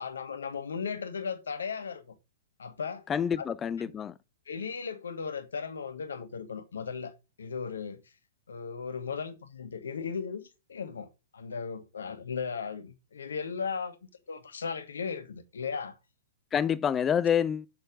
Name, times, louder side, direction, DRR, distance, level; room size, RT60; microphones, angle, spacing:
voice 1, 0.0-2.2 2.6-3.0 3.4-3.5 3.8-3.9 4.5-7.1 7.4-8.0 8.5-14.0 14.3-16.0, left 5 dB, 70° left, 1.3 m, -36 dB
voice 2, 3.1-4.1 16.5-17.7, left 8 dB, 20° left, 0.4 m, -27 dB
6.6 x 6.5 x 5.2 m
figure-of-eight pair, 115°, 0 cm